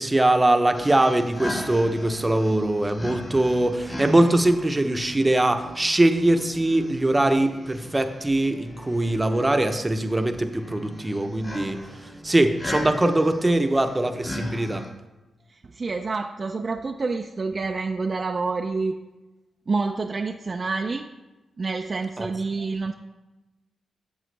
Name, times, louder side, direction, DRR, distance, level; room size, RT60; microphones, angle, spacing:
voice 1, 0.0-11.8 12.2-14.8 22.2-22.3, right 1 dB, 20° right, 7 dB, 0.8 m, -22 dB
sound 1, 0.7-14.9, left 1 dB, 40° left, 1.5 m, -38 dB
voice 2, 15.6-19.0 19.7-21.0 21.6-22.9, right 4 dB, 45° right, 4 dB, 0.4 m, -28 dB
7.6 x 7.1 x 3.3 m, 1.1 s
supercardioid pair, 50°, 0 cm